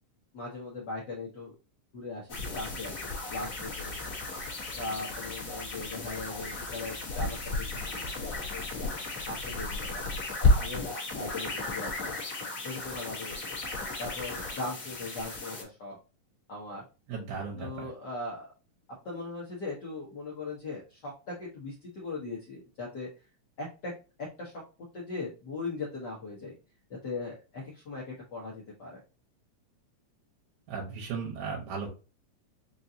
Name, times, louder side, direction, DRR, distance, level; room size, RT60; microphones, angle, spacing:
voice 1, 0.3-1.5 1.9-4.2 4.7-8.9 9.3-10.1 10.6-12.2 12.6-13.4 14.0-16.0 16.5-16.8 17.6-18.5 19.0-23.1 23.6-23.9 24.4-24.6 24.9-26.5 27.0-28.0 28.3-29.0, left 3 dB, 90° left, -4 dB, 0.9 m, -39 dB
sound 1, 2.3-15.6, left 2 dB, 50° left, 1.0 m, -33 dB
voice 2, 17.1-17.9 30.7-31.9, right 5 dB, 75° right, -2 dB, 2.2 m, -36 dB
5.3 x 2.5 x 2.7 m, 0.33 s
omnidirectional pair, 3.4 m